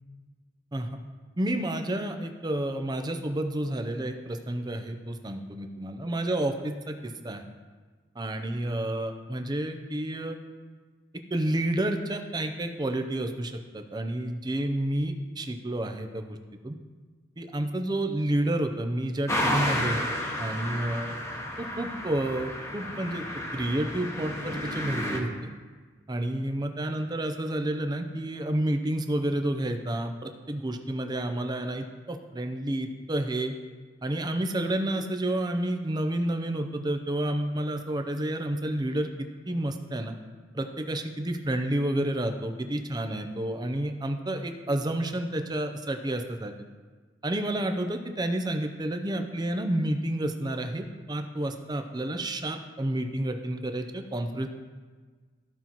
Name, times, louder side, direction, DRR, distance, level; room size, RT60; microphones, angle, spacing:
voice 1, 1.4-7.4 8.2-10.4 11.3-16.4 16.6-16.8 17.4-20.0 20.4-21.2 21.6-23.2 23.5-25.3 26.1-33.5 34.0-40.2 40.5-46.5 47.2-54.5, right 1 dB, 20° right, 6 dB, 0.6 m, -30 dB
sound 1, 19.3-25.2, left 1 dB, 15° left, 1.0 m, -31 dB
14.5 x 5.6 x 3.0 m, 1.5 s
head